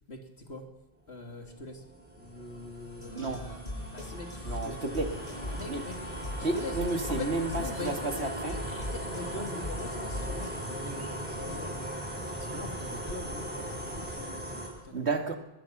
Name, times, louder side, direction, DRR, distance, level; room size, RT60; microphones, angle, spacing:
voice 1, 0.1-0.7 1.1-1.8 2.2-3.6 3.9-4.8 5.5-6.8 7.1-11.9 12.4-15.1, left 2 dB, 85° left, 3 dB, 3.2 m, -43 dB
sound 1, 1.2-14.7, equal, 10° right, 6.1 m, -39 dB
sound 2, 3.0-10.5, left 1 dB, 40° left, 7.3 m, -40 dB
voice 2, 3.1-3.5 4.4-5.2 5.7-5.8 6.4-8.6 14.9-15.4, right 3 dB, 85° right, 5 dB, 2.4 m, -31 dB
Bird, 5.0-14.2, right 1 dB, 55° right, 7.4 m, -46 dB
22.5 x 20.5 x 6.1 m, 1.0 s
omnidirectional pair, 1.1 m